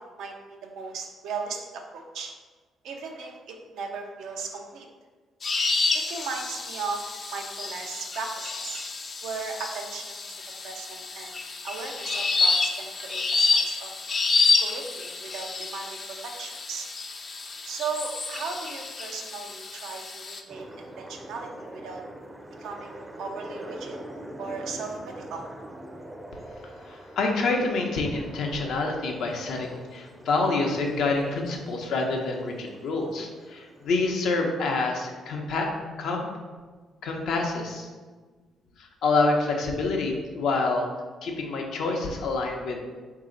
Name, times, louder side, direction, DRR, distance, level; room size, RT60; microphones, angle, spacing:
voice 1, 0.0-2.3 2.8-4.9 5.9-7.0 7.3-8.8 9.2-11.4 11.6-13.9 14.6-16.9 17.7-22.0 22.6-24.0 24.4-25.5, right 4 dB, 80° right, 2 dB, 0.6 m, -37 dB
sound 1, 5.4-20.4, left 4 dB, 40° left, 0.4 m, -29 dB
sound 2, 20.5-34.1, right 1 dB, 15° right, 0.5 m, -44 dB
voice 2, 26.3-35.7 36.0-36.2 37.0-37.9 38.8-40.9 41.2-42.8, left 3 dB, 75° left, 1 dB, 0.7 m, -27 dB
4.0 x 2.7 x 3.8 m, 1.4 s
cardioid pair, 90°, 0 cm